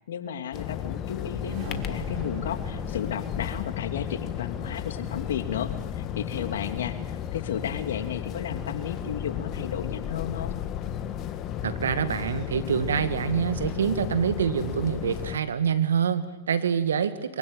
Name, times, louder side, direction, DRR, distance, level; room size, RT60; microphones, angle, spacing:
voice 1, 0.0-7.0 7.3-10.6, left 8 dB, 75° left, 8 dB, 2.6 m, -33 dB
sound 1, 0.5-15.4, left 9 dB, 40° left, 2.0 m, -33 dB
sound 2, 1.3-5.7, right 5 dB, 45° right, 5.7 m, -44 dB
voice 2, 11.6-17.4, right 7 dB, 85° right, 11 dB, 2.1 m, -26 dB
24.5 x 23.5 x 9.1 m, 1.0 s
hypercardioid pair, 105°, 0 cm